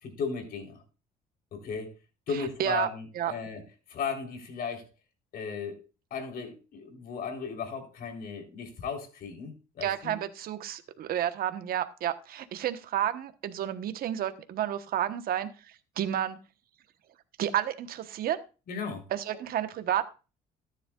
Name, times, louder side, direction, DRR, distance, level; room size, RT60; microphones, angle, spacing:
voice 1, 0.0-0.8 1.5-1.9 2.3-3.6 3.9-4.9 5.3-5.8 6.1-10.1 18.7-19.1, left 5 dB, 60° left, 4 dB, 3.7 m, -36 dB
voice 2, 2.3-2.9 3.1-3.3 9.8-15.5 16.0-16.4 17.4-18.4 19.1-20.1, right 11 dB, 60° right, 10 dB, 1.2 m, -31 dB
13.5 x 10.0 x 2.4 m, 0.31 s
cardioid pair, 110°, 17 cm